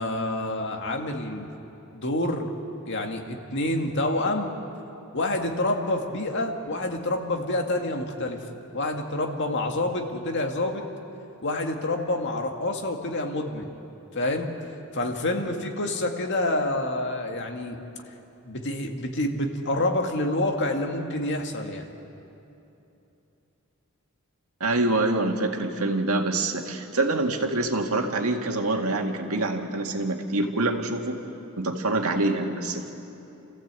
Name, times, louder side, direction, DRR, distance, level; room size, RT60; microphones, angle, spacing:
voice 1, 0.0-1.5 1.9-2.5 2.9-4.6 5.1-8.4 8.7-10.9 11.4-13.7 14.1-14.5 14.9-17.8 18.5-21.9, left 1 dB, 55° left, 3 dB, 2.0 m, -27 dB
voice 2, 24.6-31.2 31.6-32.9, right 2 dB, 85° right, 3 dB, 2.0 m, -25 dB
29.5 x 15.0 x 8.3 m, 2.9 s
head